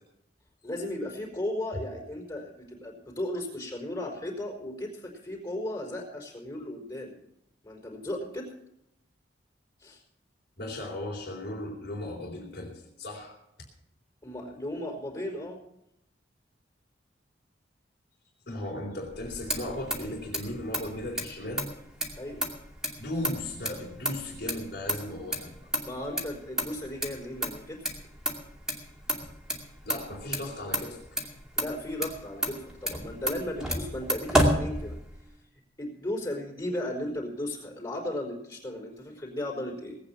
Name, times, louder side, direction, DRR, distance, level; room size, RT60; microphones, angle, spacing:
voice 1, 0.6-7.2 7.6-8.5 9.8-10.0 14.2-15.6 22.2-22.4 25.8-27.9 31.6-35.0 35.8-40.0, left 1 dB, 25° left, 0 dB, 4.5 m, -35 dB
voice 2, 10.6-13.3 18.5-21.7 23.0-25.6 29.8-31.0, left 1 dB, 60° left, -3 dB, 3.8 m, -36 dB
Motor vehicle (road), 19.1-35.3, equal, 5° right, 2.4 m, -32 dB
19.0 x 8.8 x 6.0 m, 0.80 s
head